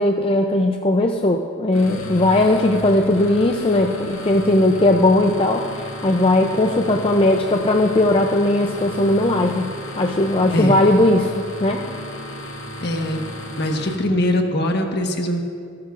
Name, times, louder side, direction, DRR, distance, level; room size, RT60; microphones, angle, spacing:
voice 1, 0.0-5.6 6.0-9.7 10.0-11.8, left 1 dB, 25° left, 3 dB, 0.5 m, -18 dB
sound 1, 1.7-14.0, equal, 90° left, 1.9 m, -34 dB
voice 2, 12.8-13.2 13.5-15.4, left 1 dB, 55° left, 2 dB, 1.4 m, -22 dB
27.5 x 11.5 x 2.5 m, 2.2 s
head